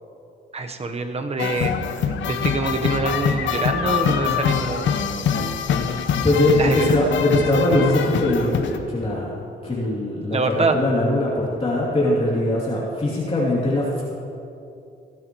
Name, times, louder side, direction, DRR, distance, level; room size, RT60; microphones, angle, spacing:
voice 1, 0.5-1.7 2.3-5.0 6.6-6.9 10.3-10.8, right 3 dB, 30° right, 6 dB, 1.1 m, -25 dB
sound 1, 1.4-8.8, left 7 dB, 75° left, 0.9 m, -24 dB
voice 2, 6.2-9.3 9.6-14.0, left 1 dB, 30° left, -7 dB, 2.8 m, -21 dB
19.0 x 11.0 x 3.1 m, 2.7 s
cardioid pair, 90°, 20 cm